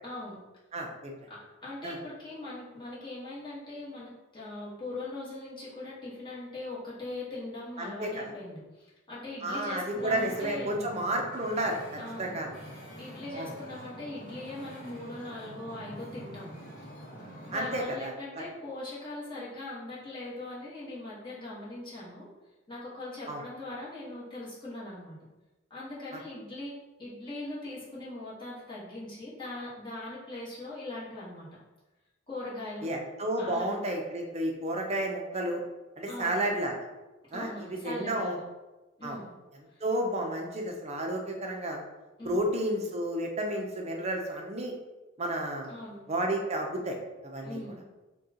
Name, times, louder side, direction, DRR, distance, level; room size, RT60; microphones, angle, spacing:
voice 1, 0.0-0.4 1.3-10.7 12.0-12.3 13.0-16.6 17.4-22.3 22.7-25.2 25.7-31.5 32.3-32.9 33.4-33.7 36.1-36.4 37.3-38.4 39.0-39.3 39.7-39.8 42.2-42.4 45.7-46.0 47.4-47.8, left 2 dB, 25° left, -8 dB, 1.4 m, -40 dB
voice 2, 0.7-1.1 1.8-2.0 7.8-8.3 9.4-12.6 13.3-13.5 17.5-18.4 23.3-23.4 32.8-35.6 36.0-36.7 37.3-38.4 39.0-39.2 39.8-41.8 42.2-44.7 45.2-45.7 46.1-47.0 47.2-47.6, right 1 dB, 35° right, 1 dB, 0.6 m, -31 dB
Wind / Ocean, 9.9-17.8, equal, 45° left, 1.1 m, -46 dB
6.2 x 2.3 x 2.9 m, 1.1 s
head